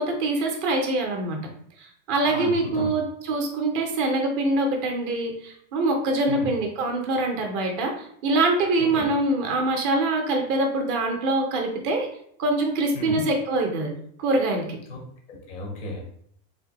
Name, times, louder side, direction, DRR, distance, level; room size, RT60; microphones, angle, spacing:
voice 1, 0.0-1.4 1.8-12.1 12.4-13.9 14.2-14.7, right 2 dB, 35° right, 2 dB, 0.6 m, -24 dB
voice 2, 2.2-2.9 6.3-6.5 8.8-9.0 12.9-13.2 14.9-15.0 15.3-16.0, left 1 dB, 15° left, 0 dB, 0.4 m, -34 dB
3.5 x 2.5 x 3.9 m, 0.67 s
supercardioid pair, 175°, 42 cm